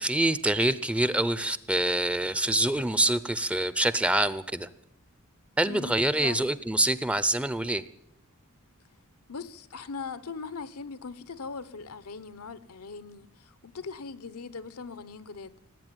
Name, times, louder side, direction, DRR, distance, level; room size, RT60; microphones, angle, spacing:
voice 1, 0.0-4.7 5.6-7.8, right 1 dB, 5° right, 0.5 m, -26 dB
voice 2, 9.3-15.5, left 4 dB, 85° left, 1.0 m, -40 dB
18.5 x 8.6 x 9.0 m
head